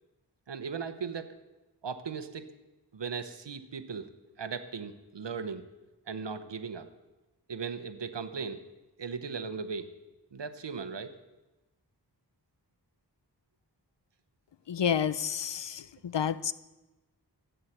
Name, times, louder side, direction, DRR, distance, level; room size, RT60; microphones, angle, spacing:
voice 1, 0.5-1.3 1.8-2.5 2.9-4.1 4.4-5.6 6.1-6.9 7.5-8.6 9.0-9.9 10.3-11.2, right 5 dB, 90° right, 10 dB, 1.0 m, -37 dB
voice 2, 14.7-15.8 16.1-16.5, left 8 dB, 90° left, 16 dB, 0.6 m, -29 dB
14.0 x 9.0 x 7.9 m, 1.1 s
wide cardioid pair, 60°, 41 cm